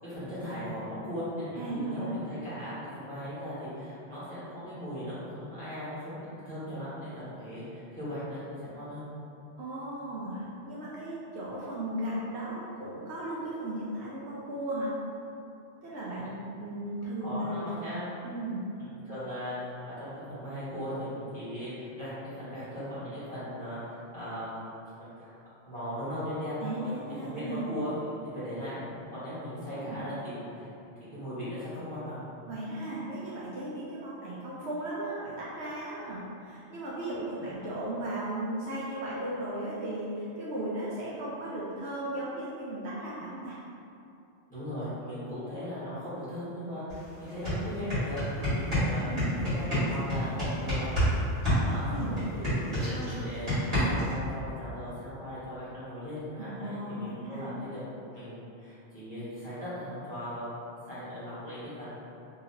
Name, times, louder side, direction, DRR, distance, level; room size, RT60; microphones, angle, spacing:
voice 1, 0.0-6.2 6.4-9.0 16.1-16.3 17.2-18.4 18.8-25.4 25.6-26.9 27.2-32.2 37.4-37.5 44.5-49.0 49.4-51.2 51.6-52.9 53.2-57.8 58.1-60.5 60.9-61.9, equal, 5° left, -15 dB, 1.3 m, -38 dB
voice 2, 1.6-2.1 9.6-15.0 15.8-17.8 18.2-18.6 26.6-27.6 29.5-30.0 32.5-43.6 49.0-49.3 51.8-52.2 56.4-57.4, right 1 dB, 70° right, -8 dB, 0.8 m, -36 dB
sound 1, 46.9-47.0 47.3-51.1 51.4-54.1, equal, 35° right, 1.7 m, -28 dB
2.9 x 2.8 x 2.6 m, 2.7 s
omnidirectional pair, 1.2 m